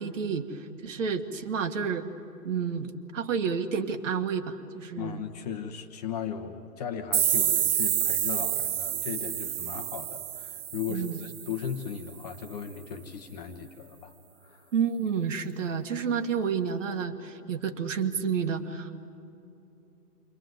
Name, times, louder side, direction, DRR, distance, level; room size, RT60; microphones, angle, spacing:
voice 1, 0.0-2.0 2.4-5.2 10.9-11.2 14.7-19.1, right 6 dB, 50° right, 8 dB, 1.8 m, -30 dB
voice 2, 5.0-14.1 14.4-14.7, left 8 dB, 25° left, 7 dB, 1.1 m, -37 dB
sound 1, 7.1-11.8, right 10 dB, 70° right, 0.8 m, -28 dB
28.5 x 24.0 x 7.9 m, 2.8 s
hypercardioid pair, 155°, 47 cm